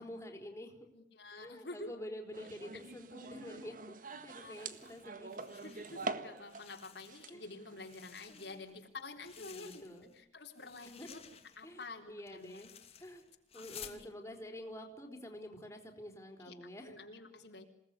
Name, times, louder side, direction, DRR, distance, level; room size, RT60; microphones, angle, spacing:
voice 1, 0.0-0.9 1.2-3.8 4.1-5.3 7.3-7.4 8.3-8.6 9.4-10.1 11.0-11.1 11.6-12.7 13.0-13.2 13.5-17.0, left 1 dB, 15° left, 1 dB, 4.5 m, -48 dB
voice 2, 0.9-1.9 2.7-2.8 4.4-4.5 5.5-9.8 10.1-11.2 11.6-12.6 13.5-14.1 16.4-16.6 16.8-17.6, left 3 dB, 65° left, 2 dB, 3.9 m, -49 dB
sound 1, 2.3-6.7 7.0-8.1, right 3 dB, 45° right, 1.7 m, -45 dB
sound 2, 4.4-6.1 6.4-7.4 7.7-10.2 10.5-14.0, left 8 dB, 35° left, 2.9 m, -55 dB
28.0 x 19.0 x 9.8 m, 0.80 s
head